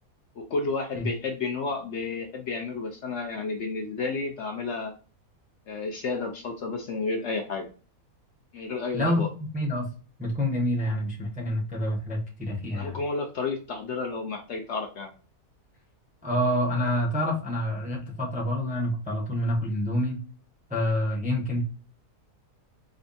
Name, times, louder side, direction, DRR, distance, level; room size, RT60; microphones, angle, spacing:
voice 1, 0.4-4.9 5.7-7.7 8.5-9.3 12.7-15.1, left 4 dB, 65° left, 2 dB, 0.8 m, -31 dB
voice 2, 9.5-9.9 10.2-13.0 16.2-20.2 20.7-21.6, left 1 dB, 10° right, -1 dB, 0.5 m, -27 dB
5.0 x 2.2 x 2.5 m, 0.37 s
omnidirectional pair, 1.6 m